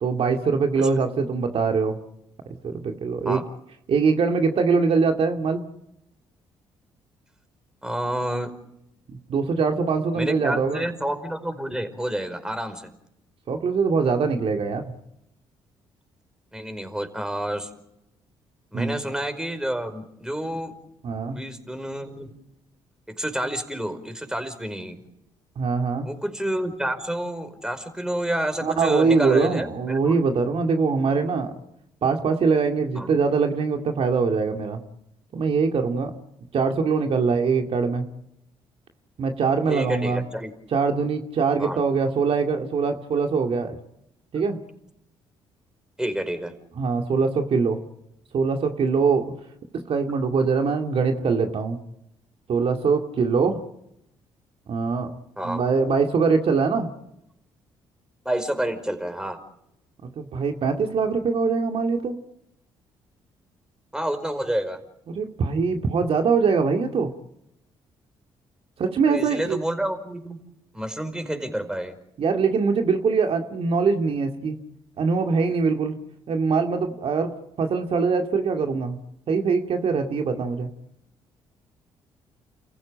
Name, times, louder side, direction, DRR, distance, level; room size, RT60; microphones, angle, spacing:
voice 1, 0.0-2.0 2.6-3.4 3.9-5.6 9.1-10.8 13.5-14.9 18.7-18.9 21.0-21.4 25.6-26.1 28.6-31.5 32.0-34.8 35.3-36.1 36.5-38.0 39.2-40.2 40.7-43.8 44.3-44.6 46.8-47.8 48.3-49.3 49.9-51.8 52.5-53.6 54.7-55.1 55.4-56.9 60.2-62.2 65.1-67.1 68.8-69.6 72.2-74.6 75.0-76.0 76.3-77.3 77.6-79.0 79.3-80.7, right 5 dB, 60° right, 4 dB, 2.3 m, -23 dB
voice 2, 7.8-8.5 10.1-12.9 16.5-17.7 18.7-20.7 21.2-22.3 23.1-25.0 26.0-30.2 32.9-33.1 39.7-40.5 41.6-41.8 46.0-46.5 55.4-55.6 58.2-59.4 63.9-64.8 69.0-70.4 70.7-71.9, right 1 dB, 5° right, 8 dB, 5.0 m, -29 dB
29.5 x 15.5 x 9.0 m, 0.81 s
hypercardioid pair, 55°, 11 cm